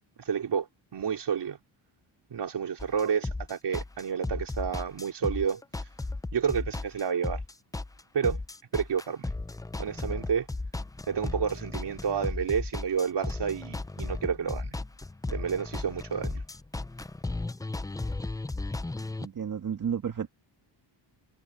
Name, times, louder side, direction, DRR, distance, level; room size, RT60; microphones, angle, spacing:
voice 1, 0.3-1.6 2.3-5.6 6.3-7.4 8.1-8.4 8.7-9.3 9.8-10.5 11.1-14.8 15.3-16.4, right 7 dB, 60° right, 3.8 m, -30 dB
sound 1, 2.8-19.3, left 2 dB, 10° left, 0.4 m, -35 dB
voice 2, 19.2-20.3, right 7 dB, 40° right, 1.6 m, -32 dB
wide cardioid pair, 130°, 47 cm